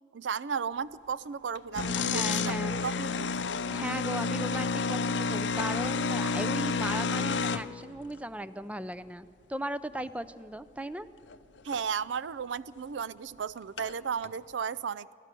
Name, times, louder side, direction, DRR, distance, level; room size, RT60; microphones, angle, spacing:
voice 1, 0.1-3.3 11.6-15.1, right 6 dB, 75° right, 18 dB, 0.4 m, -34 dB
sound 1, 1.5-7.7 11.3-11.4 11.7-11.8 13.8-13.9 14.2-14.3, left 4 dB, 70° left, 0.6 m, -30 dB
voice 2, 2.0-2.8 3.7-11.1, right 1 dB, 10° right, 14 dB, 0.5 m, -37 dB
25.0 x 16.0 x 6.8 m, 2.6 s
head